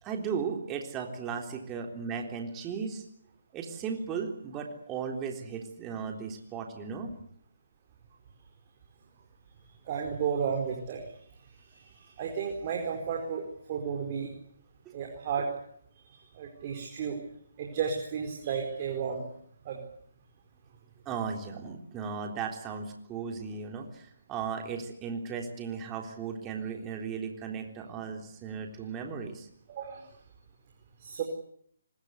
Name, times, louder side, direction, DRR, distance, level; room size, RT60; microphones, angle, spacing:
voice 1, 0.0-3.0 3.5-7.1 21.1-29.5, right 6 dB, 20° right, 3 dB, 3.7 m, -36 dB
voice 2, 9.8-11.0 11.7-14.3 14.9-15.5 15.9-17.2 17.6-19.2 19.6-19.8 29.7-30.1 31.0-31.2, right 6 dB, 35° right, 1 dB, 4.6 m, -33 dB
24.5 x 21.5 x 8.1 m, 0.65 s
hypercardioid pair, 150°, 0 cm